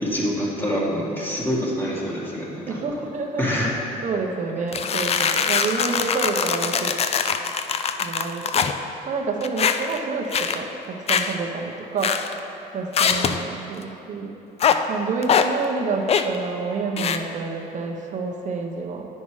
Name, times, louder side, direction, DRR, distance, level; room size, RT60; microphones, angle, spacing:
voice 1, 0.0-2.8 3.4-3.7, equal, 10° left, -5 dB, 1.8 m, -25 dB
voice 2, 2.7-3.5 4.0-7.0 8.0-8.7 9.1-12.2 12.7-14.3 14.9-19.1, right 4 dB, 45° right, 2 dB, 1.0 m, -28 dB
sound 1, 4.7-8.8 9.4-10.0 10.3-10.6 11.1-11.4 12.0-12.4 12.9-13.4 14.6-14.8 15.2-15.5 16.1-16.4 17.0-17.2, left 7 dB, 40° left, 0.4 m, -22 dB
9.6 x 5.5 x 4.8 m, 3.0 s
cardioid pair, 110°, 17 cm